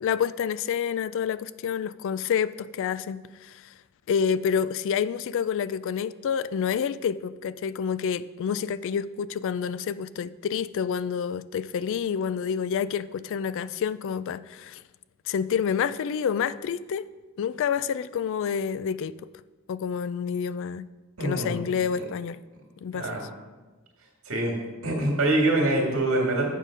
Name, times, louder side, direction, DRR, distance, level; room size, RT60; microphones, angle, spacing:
voice 1, 0.0-3.7 4.1-14.8 15.3-17.1 17.4-19.2 19.7-20.9 21.2-22.4 22.8-23.1, left 7 dB, 60° left, 0.3 m, -28 dB
voice 2, 21.2-21.6 22.9-23.2 24.3-24.5 24.8-26.5, right 2 dB, 70° right, 2.0 m, -24 dB
7.6 x 6.4 x 5.0 m
head